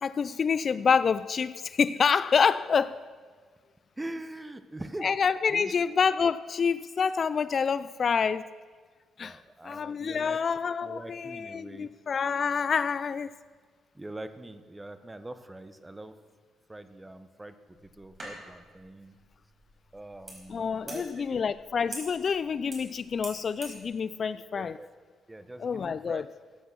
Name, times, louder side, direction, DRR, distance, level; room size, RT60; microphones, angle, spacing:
voice 1, 0.0-3.0 5.0-8.5 9.2-9.4 9.6-13.3 20.5-24.8 25.6-26.2, left 6 dB, 45° left, 0.3 m, -27 dB
voice 2, 4.0-5.1 5.5-5.7 9.2-10.4 10.8-11.9 13.9-16.2 16.7-17.5 17.8-19.2 19.9-21.2 24.3-24.9 25.3-26.2, right 1 dB, 15° right, 0.9 m, -43 dB
sound 1, 17.8-23.8, right 1 dB, 30° right, 4.9 m, -46 dB
15.0 x 8.2 x 6.2 m
cardioid pair, 90°, 0 cm